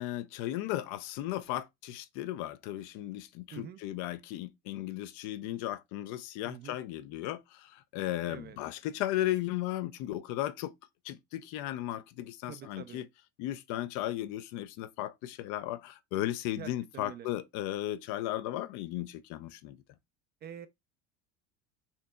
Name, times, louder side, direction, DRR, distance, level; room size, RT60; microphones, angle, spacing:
voice 1, 0.0-10.7 11.0-13.1 13.4-19.8, left 14 dB, 55° left, 0.5 m, -35 dB
voice 2, 6.4-6.8 8.3-8.6 12.5-13.0 16.6-17.3 20.4-20.7, right 9 dB, 30° right, 0.4 m, -46 dB
4.3 x 2.7 x 2.2 m
hypercardioid pair, 90°, 34 cm